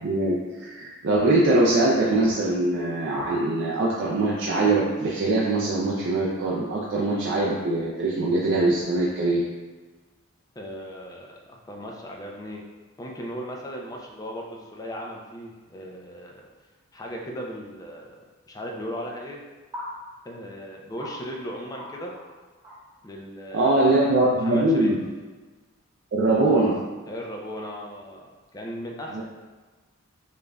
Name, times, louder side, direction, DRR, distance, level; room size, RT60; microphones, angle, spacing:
voice 1, 0.0-9.4 23.5-25.0 26.1-26.8 29.1-29.2, right 2 dB, 55° right, -5 dB, 0.4 m, -22 dB
voice 2, 10.6-12.6 13.0-16.5 16.9-18.2 18.5-19.4 20.2-22.1 23.0-23.8 24.4-25.0 27.1-28.3 28.5-29.2, equal, 15° left, -1 dB, 0.4 m, -37 dB
sound 1, 17.5-17.6 19.7-19.9 20.4-20.5 21.0-21.1 21.8-21.9 22.1-22.3 22.6-22.9, left 1 dB, 20° right, 1.2 m, -38 dB
5.1 x 2.5 x 2.2 m, 1.3 s
head